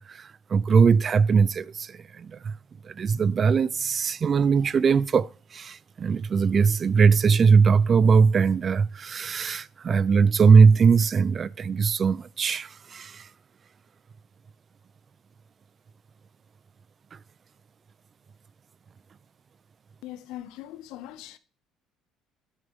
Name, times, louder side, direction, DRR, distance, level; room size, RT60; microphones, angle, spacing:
voice 1, 0.0-2.5 2.9-13.2, right 5 dB, 35° right, 0.4 m, -20 dB
voice 2, 20.0-21.4, left 13 dB, 80° left, 0.7 m, -40 dB
8.9 x 6.4 x 3.5 m
cardioid pair, 105°, 0 cm